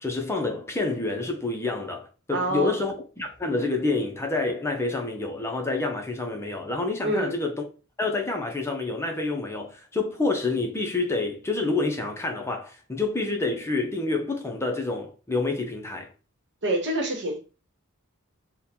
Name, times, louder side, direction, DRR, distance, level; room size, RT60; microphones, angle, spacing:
voice 1, 0.0-7.6 8.0-16.1, left 3 dB, 10° left, 0.6 m, -28 dB
voice 2, 2.3-2.8 7.0-7.4 16.6-17.4, right 1 dB, 55° right, 1.1 m, -26 dB
3.7 x 2.2 x 4.2 m
head